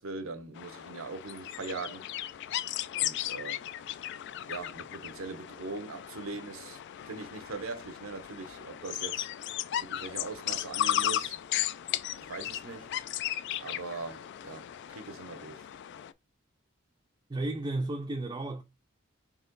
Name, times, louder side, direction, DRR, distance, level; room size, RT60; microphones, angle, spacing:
voice 1, 0.0-2.0 2.9-3.6 4.5-6.8 7.1-9.3 9.8-11.4 12.2-12.9 13.6-15.6, right 3 dB, 80° right, 0.8 m, -41 dB
sound 1, 0.5-16.1, left 12 dB, 60° left, 0.3 m, -36 dB
voice 2, 17.3-18.6, right 2 dB, 20° right, 0.5 m, -33 dB
4.2 x 2.9 x 3.8 m
head